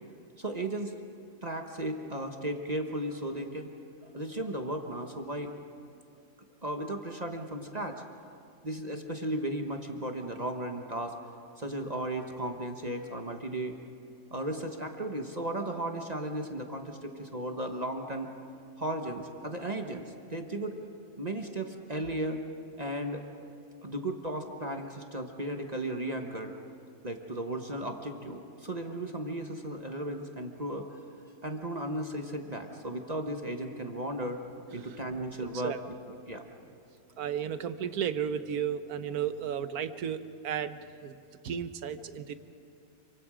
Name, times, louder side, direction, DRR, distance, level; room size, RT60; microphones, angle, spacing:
voice 1, 0.4-0.9 1.4-3.7 4.1-5.5 6.6-8.0 8.6-11.1 11.6-13.8 14.3-18.3 18.8-20.8 21.2-22.4 22.8-23.2 23.8-26.6 27.0-31.0 31.4-34.4 34.7-35.7 36.3-36.4, right 1 dB, 30° right, 4 dB, 1.3 m, -35 dB
voice 2, 37.2-41.2 41.4-42.3, right 8 dB, 90° right, 11 dB, 1.4 m, -33 dB
27.5 x 24.5 x 5.0 m, 2.4 s
omnidirectional pair, 1.5 m